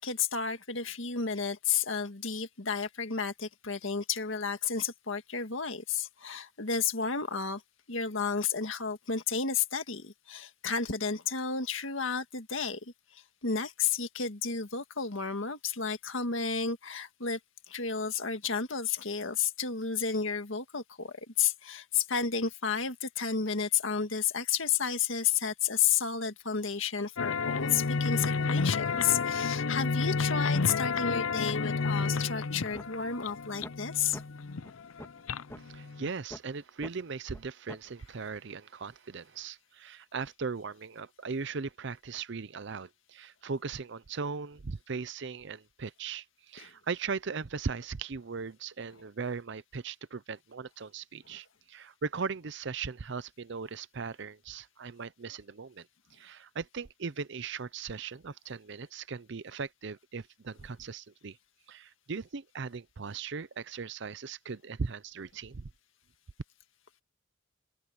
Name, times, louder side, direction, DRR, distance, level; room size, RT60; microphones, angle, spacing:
voice 1, 0.0-7.6 7.9-17.4 17.7-34.2 46.6-46.7 51.3-51.4, left 6 dB, 70° left, 1.9 m, -32 dB
sound 1, 27.2-36.1, left 4 dB, 90° left, 0.7 m, -31 dB
sound 2, 32.7-32.9 33.2-33.3 33.6-33.8 34.1-34.2 34.6-34.7 35.0-35.2 35.5-35.6 36.0-36.4 36.8-36.9 37.3-37.4 37.7-37.9, left 1 dB, 15° left, 1.6 m, -44 dB
voice 2, 35.6-55.9 56.1-61.4 61.7-65.7, right 5 dB, 60° right, 0.6 m, -38 dB
open air
head